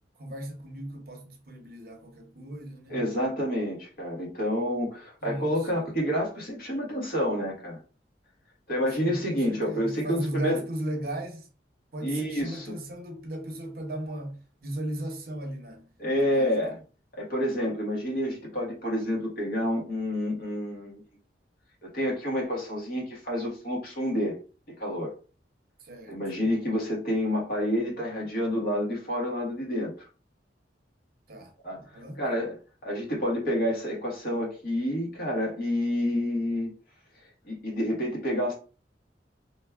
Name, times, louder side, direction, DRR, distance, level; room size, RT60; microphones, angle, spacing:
voice 1, 0.2-3.0 5.2-5.8 9.0-11.5 11.9-15.9 16.1-16.6 25.8-26.2 31.3-32.2, right 1 dB, 55° right, 0.8 m, -36 dB
voice 2, 2.9-7.8 8.7-10.6 12.0-12.8 16.0-16.8 17.1-21.0 21.8-24.4 24.8-25.1 26.1-29.9 31.6-32.6 32.8-36.7 37.5-38.5, equal, 55° left, 1.4 m, -29 dB
3.1 x 2.3 x 3.4 m
head